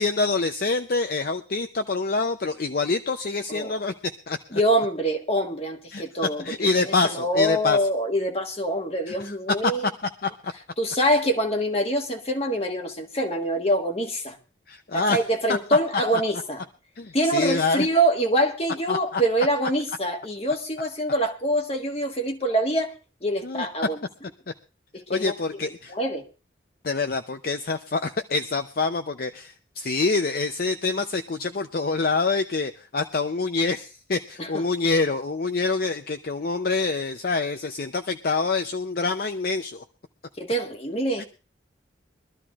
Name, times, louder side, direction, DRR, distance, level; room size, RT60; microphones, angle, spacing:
voice 1, 0.0-4.6 5.9-6.0 6.4-7.8 9.1-9.9 10.2-10.5 14.7-15.2 17.0-17.9 18.9-19.2 23.4-23.7 25.1-25.9 26.8-39.8 41.2-41.3, left 3 dB, 50° left, 0.5 m, -26 dB
voice 2, 3.5-3.8 4.5-6.4 6.7-9.9 10.8-14.4 14.9-16.6 17.1-22.9 23.2-24.0 24.9-25.3 25.9-26.2 34.4-34.6 40.4-41.3, right 1 dB, 30° left, 1.4 m, -25 dB
23.0 x 13.0 x 2.4 m
head